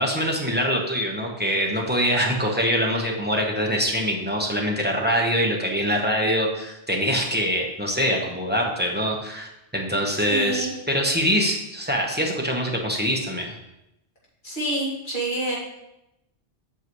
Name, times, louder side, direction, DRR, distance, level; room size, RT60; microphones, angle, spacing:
voice 1, 0.0-13.5, equal, 10° right, -1 dB, 1.0 m, -24 dB
voice 2, 10.3-10.7 14.4-15.6, right 1 dB, 45° left, -5 dB, 2.3 m, -27 dB
8.1 x 6.7 x 3.1 m, 0.89 s
omnidirectional pair, 1.2 m